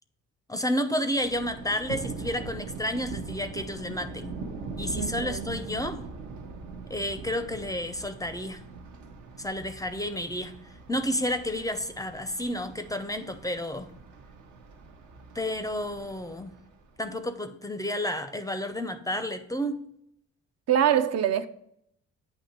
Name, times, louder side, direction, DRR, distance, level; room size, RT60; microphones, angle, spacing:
voice 1, 0.5-4.4 4.8-6.0 6.9-8.7 9.4-13.9 15.3-16.6 17.0-19.8, equal, 10° left, 0.4 m, -31 dB
Thunder, 1.2-17.1, right 4 dB, 75° right, 0.8 m, -42 dB
voice 2, 5.0-5.5 20.7-21.5, right 9 dB, 55° right, 0.5 m, -24 dB
8.7 x 2.9 x 4.3 m
cardioid pair, 90°, 30 cm